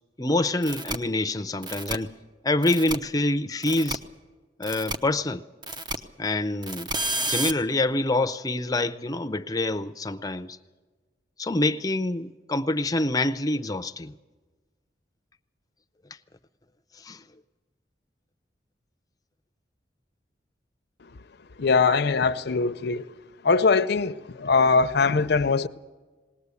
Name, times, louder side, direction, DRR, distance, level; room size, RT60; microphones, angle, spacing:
voice 1, 0.2-2.1 2.4-4.0 4.6-5.4 6.2-6.9 7.3-10.6 11.4-14.1 17.0-17.2, left 2 dB, 20° left, 0.6 m, -26 dB
sound 1, 0.6-1.0 1.6-2.0 2.6-3.0 3.6-4.0 4.6-5.0 5.6-6.0 6.6-7.5, right 2 dB, 25° right, 0.8 m, -30 dB
voice 2, 21.6-23.0 23.4-25.7, left 4 dB, 65° left, 0.6 m, -21 dB
19.0 x 19.0 x 8.3 m
head